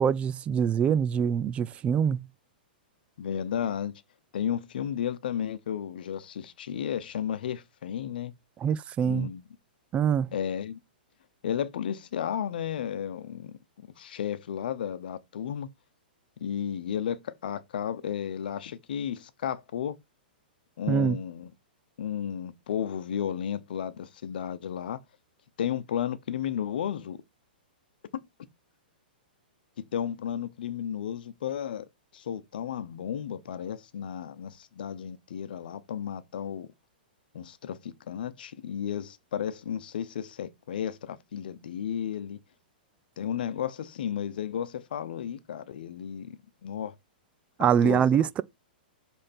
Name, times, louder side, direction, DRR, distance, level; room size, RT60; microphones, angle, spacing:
voice 1, 0.0-2.2 8.6-9.3 9.9-10.3 20.9-21.2 47.6-48.4, right 8 dB, 25° right, 0.4 m, -24 dB
voice 2, 3.2-3.9 4.3-8.3 9.0-9.4 10.3-10.8 11.4-13.5 14.0-15.7 16.4-20.0 20.8-21.5 22.0-25.0 25.6-27.2 29.8-31.9 32.1-36.7 37.3-42.4 43.2-46.9 47.6-48.2, left 9 dB, 70° left, 0.9 m, -33 dB
7.5 x 3.6 x 4.3 m
hypercardioid pair, 120°, 5 cm